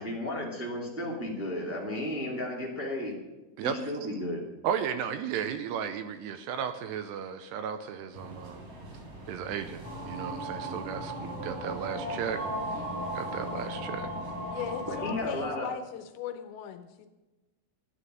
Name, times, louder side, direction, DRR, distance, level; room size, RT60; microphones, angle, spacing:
voice 1, 0.0-3.1 3.6-4.4 14.9-15.7, left 1 dB, 15° right, -4 dB, 0.5 m, -33 dB
voice 2, 3.6-3.9 4.6-8.6 9.3-12.4 12.7-14.1, right 8 dB, 80° right, 9 dB, 2.5 m, -35 dB
sound 1, 8.1-15.5, right 1 dB, 55° right, 4.7 m, -46 dB
sound 2, 9.8-15.2, right 1 dB, 10° left, 5.0 m, -36 dB
voice 3, 14.5-17.1, left 9 dB, 80° left, 8 dB, 2.9 m, -38 dB
13.0 x 10.0 x 6.2 m, 1.1 s
omnidirectional pair, 5.4 m